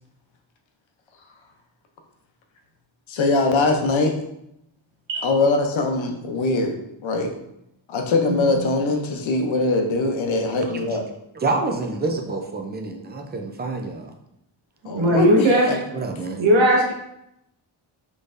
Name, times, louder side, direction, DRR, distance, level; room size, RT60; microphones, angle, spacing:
voice 1, 3.1-4.1 5.2-6.8 7.0-7.3 7.9-11.0 14.8-15.8, left 3 dB, 75° left, 3 dB, 0.7 m, -22 dB
voice 2, 8.3-8.6 14.9-15.7 16.4-16.9, right 1 dB, 70° right, -1 dB, 1.1 m, -18 dB
voice 3, 11.4-14.1 15.1-15.4 15.9-16.4, right 3 dB, 25° right, 3 dB, 0.4 m, -27 dB
4.2 x 3.3 x 2.5 m, 0.80 s
wide cardioid pair, 135°, 47 cm